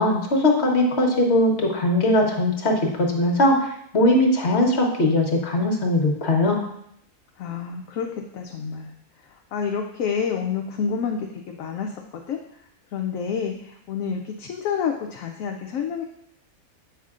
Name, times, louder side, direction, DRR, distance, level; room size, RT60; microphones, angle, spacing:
voice 1, 0.0-6.6, left 1 dB, 50° left, 1 dB, 1.3 m, -20 dB
voice 2, 7.4-8.1 8.3-8.9 9.5-12.4 12.9-16.0, left 6 dB, 70° left, 3 dB, 0.9 m, -28 dB
8.0 x 5.7 x 2.4 m, 0.76 s
omnidirectional pair, 1.6 m